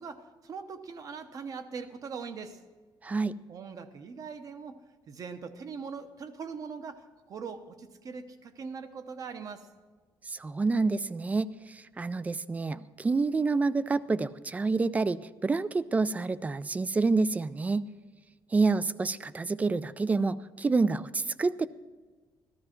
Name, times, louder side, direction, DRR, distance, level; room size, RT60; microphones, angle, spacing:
voice 1, 0.0-2.6 3.5-4.8 5.1-9.7, right 5 dB, 40° right, 10 dB, 0.9 m, -41 dB
voice 2, 3.0-3.3 10.3-17.9 18.5-21.7, right 3 dB, 15° right, 17 dB, 0.3 m, -28 dB
14.0 x 13.0 x 4.5 m, 1.4 s
cardioid pair, 160°, 9 cm